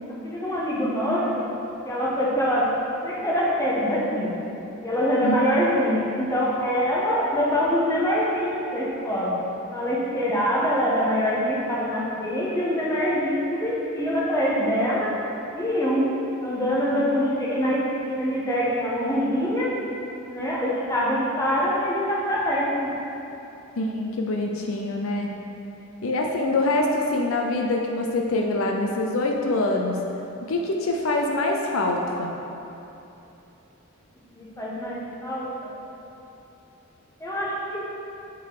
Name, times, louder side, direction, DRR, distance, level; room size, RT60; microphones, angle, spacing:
voice 1, 0.2-1.5 1.8-2.7 3.0-4.3 4.8-9.3 9.7-15.1 15.5-16.1 16.4-19.7 20.3-22.9 34.3-35.7 37.2-37.8, equal, 15° left, -6 dB, 1.2 m, -24 dB
voice 2, 5.2-5.6 23.8-25.3 26.0-30.0 30.5-32.3, left 2 dB, 70° left, 1 dB, 0.6 m, -25 dB
8.3 x 3.9 x 4.8 m, 2.9 s
head